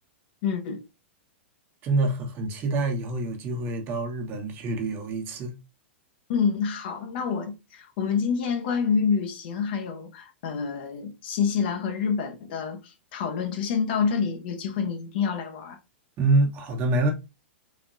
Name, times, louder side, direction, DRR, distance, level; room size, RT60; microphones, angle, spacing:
voice 1, 0.4-0.8 6.3-15.8, left 6 dB, 55° left, 0.9 m, -27 dB
voice 2, 1.8-5.5 16.2-17.1, right 2 dB, 35° right, 1.2 m, -26 dB
4.0 x 2.9 x 2.6 m
hypercardioid pair, 105°, 6 cm